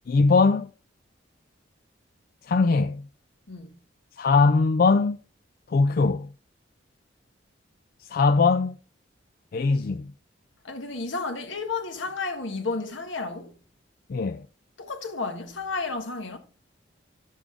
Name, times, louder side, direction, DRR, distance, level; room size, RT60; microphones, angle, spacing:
voice 1, 0.1-0.7 2.5-3.1 4.2-5.2 5.7-6.3 8.0-8.8 9.5-10.1 14.1-14.4, left 4 dB, 50° left, 0.4 m, -21 dB
voice 2, 3.5-3.8 10.6-13.6 14.8-16.4, left 4 dB, 70° left, 1.5 m, -32 dB
11.5 x 7.2 x 3.8 m
head